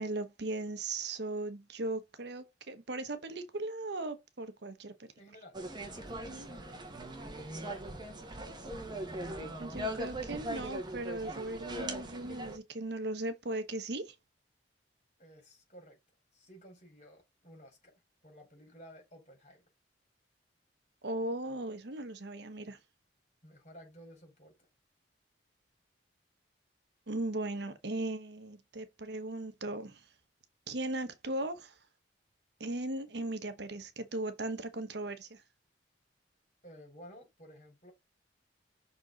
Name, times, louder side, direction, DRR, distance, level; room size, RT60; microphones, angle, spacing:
voice 1, 0.0-5.1 6.3-6.5 9.6-14.1 21.0-22.8 27.1-30.0 30.7-31.8 32.6-35.4, right 2 dB, 65° right, 1.0 m, -38 dB
voice 2, 5.1-7.0 15.2-16.0 16.3-19.6 23.4-24.7 36.6-37.9, equal, 40° left, 4.5 m, -55 dB
sound 1, 5.5-12.6, right 1 dB, 25° right, 1.6 m, -40 dB
6.1 x 4.3 x 3.9 m
head